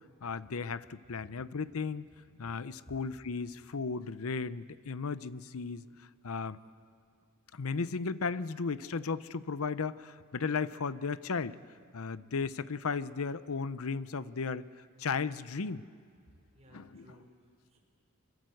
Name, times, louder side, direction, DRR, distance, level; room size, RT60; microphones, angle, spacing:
voice 1, 0.2-2.1 2.4-5.8 6.2-6.6 7.5-11.6 11.9-14.7 15.0-15.8 16.7-17.0, left 5 dB, 65° left, 15 dB, 0.7 m, -35 dB
voice 2, 16.3-17.8, equal, 30° right, 0 dB, 5.5 m, -58 dB
25.5 x 23.0 x 7.8 m, 2.2 s
head